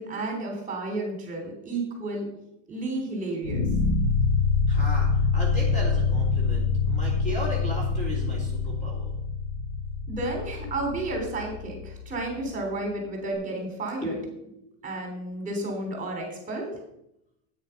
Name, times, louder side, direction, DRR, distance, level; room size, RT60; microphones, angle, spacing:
voice 1, 0.0-2.3 2.7-3.7 10.1-14.2 14.8-16.7, right 2 dB, 20° right, 1 dB, 3.5 m, -32 dB
sound 1, 3.4-12.5, left 4 dB, 85° left, 3.7 m, -26 dB
voice 2, 4.7-9.1 14.0-15.3, left 1 dB, 20° left, -3 dB, 3.9 m, -36 dB
9.7 x 8.9 x 5.8 m, 0.81 s
supercardioid pair, 125°, 37 cm